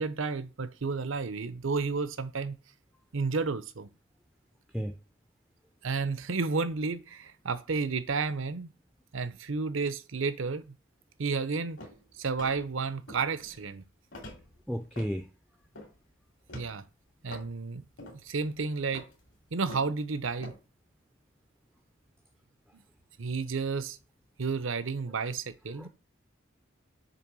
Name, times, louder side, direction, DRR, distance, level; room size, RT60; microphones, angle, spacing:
voice 1, 0.0-2.6 3.1-3.9 5.8-8.7 9.1-10.7 11.2-11.8 12.2-13.8 16.5-16.8 17.2-17.8 18.2-19.1 19.5-20.5 23.2-24.0 24.4-25.9, right 4 dB, 75° right, 0.7 m, -31 dB
sound 1, 11.8-12.0 12.4-12.7 13.1-13.7 14.1-15.2 15.6-16.0 16.5-16.8 17.3-17.5 18.0-18.3 18.6-20.0 20.4-20.6, left 1 dB, 70° left, 3.0 m, -46 dB
voice 2, 14.7-15.3 25.7-25.9, equal, ahead, 0.5 m, -33 dB
6.9 x 3.4 x 6.1 m
head